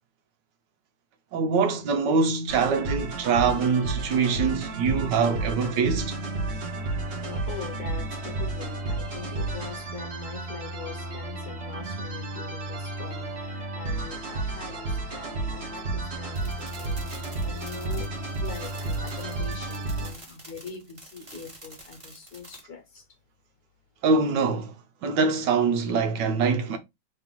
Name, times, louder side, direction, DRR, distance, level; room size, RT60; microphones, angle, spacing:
voice 1, 1.3-6.1 24.0-24.7 25.0-26.8, right 5 dB, 75° right, 1.4 m, -24 dB
sound 1, 2.5-20.1, right 2 dB, 40° right, 1.1 m, -32 dB
voice 2, 6.4-18.1 18.4-23.0, left 5 dB, 60° left, 1.4 m, -42 dB
sound 2, 16.3-22.6, right 1 dB, 20° right, 1.3 m, -48 dB
3.5 x 2.9 x 3.7 m
omnidirectional pair, 2.0 m